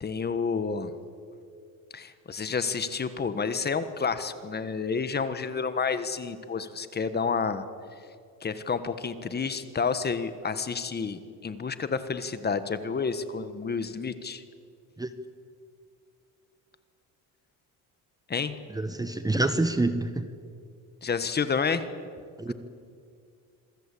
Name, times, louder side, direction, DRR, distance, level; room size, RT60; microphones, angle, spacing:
voice 1, 0.0-0.9 1.9-7.6 8.4-14.4 18.3-18.6 21.0-21.9 22.5-22.6, left 5 dB, 25° left, 11 dB, 1.4 m, -30 dB
voice 2, 18.7-20.3 22.4-22.5, right 2 dB, 10° right, 10 dB, 1.0 m, -27 dB
26.5 x 23.0 x 8.5 m, 2.3 s
cardioid pair, 135°, 39 cm